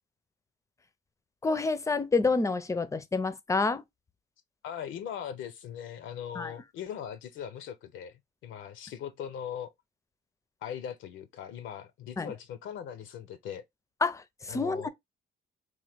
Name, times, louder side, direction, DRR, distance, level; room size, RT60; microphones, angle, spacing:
voice 1, 1.4-3.8 6.4-6.5 12.2-12.3 14.0-14.9, left 3 dB, 15° left, 0.4 m, -28 dB
voice 2, 4.6-9.7 10.6-13.6 14.5-14.9, left 9 dB, 75° left, 0.5 m, -40 dB
3.0 x 2.1 x 3.3 m
cardioid pair, 90°, 20 cm